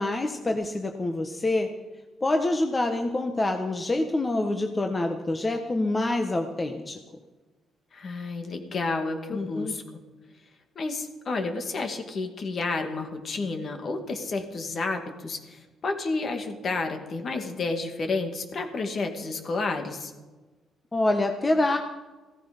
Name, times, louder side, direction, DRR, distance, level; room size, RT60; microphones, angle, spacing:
voice 1, 0.0-1.7 2.2-7.0 9.3-9.7 20.9-21.8, left 2 dB, 25° left, 5 dB, 1.2 m, -26 dB
voice 2, 7.9-9.8 10.8-20.1, left 3 dB, 50° left, 5 dB, 2.3 m, -31 dB
15.5 x 14.5 x 5.3 m, 1.2 s
cardioid pair, 90°, 0 cm